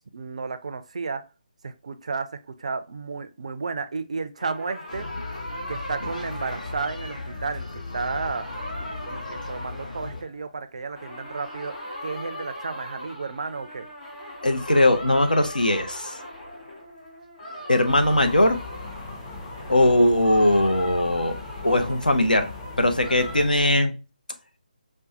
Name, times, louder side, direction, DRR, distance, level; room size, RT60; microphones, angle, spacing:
voice 1, 0.1-1.2 1.6-5.1 5.7-8.5 9.0-11.8 12.0-13.9, right 4 dB, 50° right, 10 dB, 0.4 m, -32 dB
sound 1, 4.4-10.6 10.9-23.4, left 1 dB, 35° left, 1.8 m, -39 dB
sound 2, 4.9-10.2, left 3 dB, 60° left, 1.4 m, -37 dB
voice 2, 14.4-16.2 17.7-18.6 19.7-21.3 21.6-22.5 22.8-23.9, left 1 dB, 80° left, 8 dB, 0.6 m, -20 dB
sound 3, 17.9-23.8, left 3 dB, 20° left, 0.6 m, -39 dB
5.1 x 2.1 x 2.6 m, 0.31 s
figure-of-eight pair, 150°, 5 cm